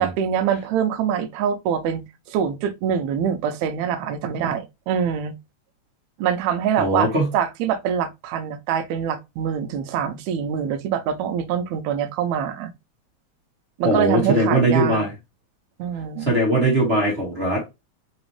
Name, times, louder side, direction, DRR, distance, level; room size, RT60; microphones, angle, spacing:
voice 1, 0.0-5.3 6.2-12.7 13.8-15.1 15.8-16.4, right 8 dB, 80° right, 1.9 m, -24 dB
voice 2, 6.8-7.3 13.8-15.1 16.2-17.6, right 1 dB, 35° right, 1.0 m, -20 dB
4.2 x 4.0 x 3.1 m
omnidirectional pair, 3.4 m